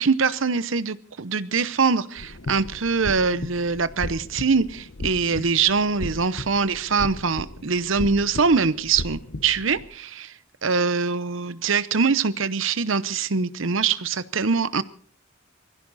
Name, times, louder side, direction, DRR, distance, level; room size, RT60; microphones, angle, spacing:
voice 1, 0.0-10.3 10.6-14.8, right 5 dB, 70° right, 16 dB, 0.9 m, -23 dB
sound 1, 2.2-9.9, left 2 dB, 65° left, 1.1 m, -36 dB
22.0 x 15.5 x 4.1 m, 0.44 s
head